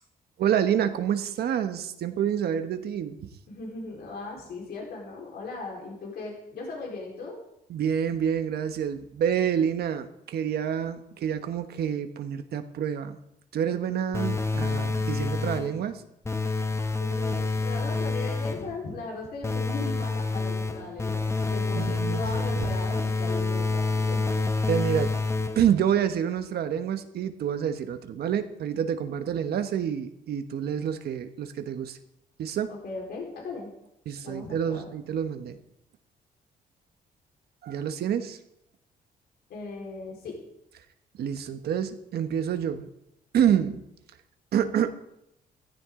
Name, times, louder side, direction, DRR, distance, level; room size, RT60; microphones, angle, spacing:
voice 1, 0.4-3.2 7.7-13.2 13.5-16.0 21.7-22.2 24.7-25.2 25.5-32.0 32.4-32.7 34.1-35.6 37.6-38.4 41.2-42.9 43.3-43.8 44.5-44.9, right 9 dB, 70° right, 9 dB, 1.2 m, -27 dB
voice 2, 3.5-7.4 17.0-24.2 32.7-33.7 34.2-34.9 39.5-40.4, left 3 dB, 70° left, -2 dB, 4.3 m, -38 dB
sound 1, 14.1-15.8 16.2-18.7 19.4-25.8, left 3 dB, 15° left, 1.1 m, -28 dB
15.5 x 14.5 x 3.8 m, 0.81 s
cardioid pair, 95°, 17 cm